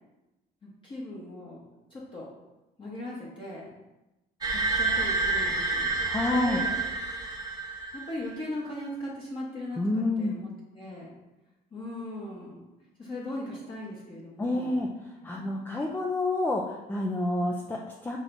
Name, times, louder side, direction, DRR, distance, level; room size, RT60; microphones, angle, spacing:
voice 1, 0.6-2.3 2.8-3.7 4.5-6.8 7.9-10.5 10.7-11.2 11.7-12.6 13.0-14.8 15.2-15.8, left 1 dB, 30° left, -5 dB, 1.0 m, -39 dB
sound 1, 4.4-8.2, right 3 dB, 25° right, 0.9 m, -29 dB
voice 2, 6.0-6.6 9.8-10.4 14.4-14.9 15.2-18.2, left 2 dB, 10° left, -1 dB, 0.4 m, -28 dB
6.3 x 3.2 x 2.6 m, 1.0 s
cardioid pair, 110°, 17 cm